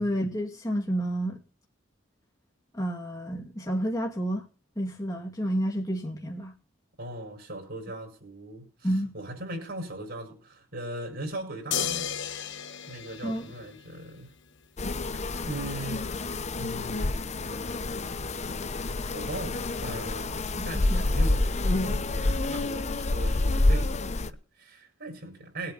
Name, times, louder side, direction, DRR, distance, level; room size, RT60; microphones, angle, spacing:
voice 1, 0.0-1.4 2.7-4.4 4.8-6.5 8.8-9.1 13.2-13.5 20.6-21.1, equal, 20° left, 2.2 m, -30 dB
voice 2, 7.0-8.9 9.1-12.1 12.9-14.3 15.1-16.1 16.5-18.3 19.1-25.7, right 1 dB, 55° right, 4.9 m, -39 dB
sound 1, 11.7-14.2 15.9-16.0, left 9 dB, 65° left, 1.1 m, -34 dB
sound 2, 14.8-24.3, left 2 dB, 35° left, 0.8 m, -28 dB
20.5 x 8.8 x 4.0 m
head